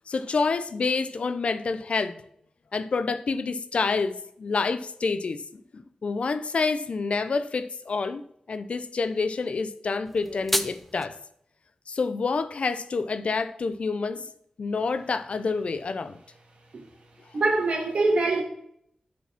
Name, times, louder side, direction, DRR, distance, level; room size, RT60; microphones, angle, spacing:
voice 1, 0.1-2.1 2.7-8.2 8.5-11.1 11.9-14.3 14.6-16.2, left 4 dB, 65° left, 0.6 m, -28 dB
sound 1, 10.0-11.1, equal, 5° left, 0.5 m, -30 dB
voice 2, 17.3-18.4, right 3 dB, 70° right, 2.1 m, -23 dB
6.9 x 5.2 x 5.9 m
wide cardioid pair, 70°, 2 cm